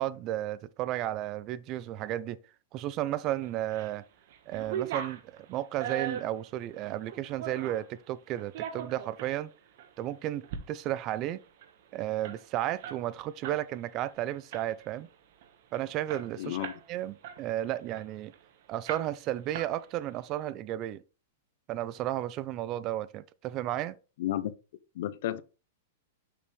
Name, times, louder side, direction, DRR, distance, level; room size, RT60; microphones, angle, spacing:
voice 1, 0.0-2.4 2.7-4.0 4.5-9.5 10.0-11.4 11.9-15.1 15.7-18.3 18.7-21.0 21.7-24.0, right 13 dB, 35° right, 0.5 m, -33 dB
sound 1, 3.4-4.0 4.3-7.9 8.4-9.3 9.8-9.9 10.3-10.6 10.9-11.0 11.3-13.6 13.9-14.1 14.5-15.0 15.4-15.5 15.7-16.9 17.2-18.4 18.9-19.3 19.5-20.2, right 8 dB, 60° right, 1.3 m, -39 dB
voice 2, 16.4-16.7 24.2-24.5 25.0-25.4, left 13 dB, 60° left, 0.6 m, -32 dB
6.8 x 5.4 x 3.2 m
hypercardioid pair, 140°, 0 cm